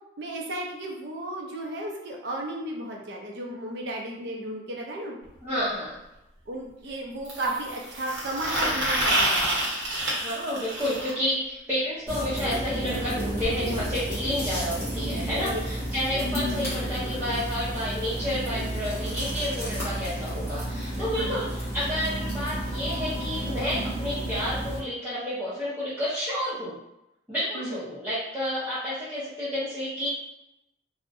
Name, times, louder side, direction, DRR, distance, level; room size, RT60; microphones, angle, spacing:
voice 1, 0.2-5.1 6.5-9.6 15.4-15.6 16.1-16.3 21.1-21.4 27.5-27.8, right 1 dB, 60° right, -1 dB, 0.5 m, -34 dB
sound 1, 5.2-5.3 7.2-11.1 13.0-13.1 13.4-13.5 13.8-13.9 14.8-14.9, right 1 dB, 80° right, 0.9 m, -27 dB
voice 2, 5.4-6.0 10.2-26.8 27.3-30.1, equal, 10° right, -13 dB, 0.6 m, -30 dB
sound 2, 12.1-24.8, equal, 15° left, 1.0 m, -31 dB
2.6 x 2.0 x 2.5 m, 0.88 s
head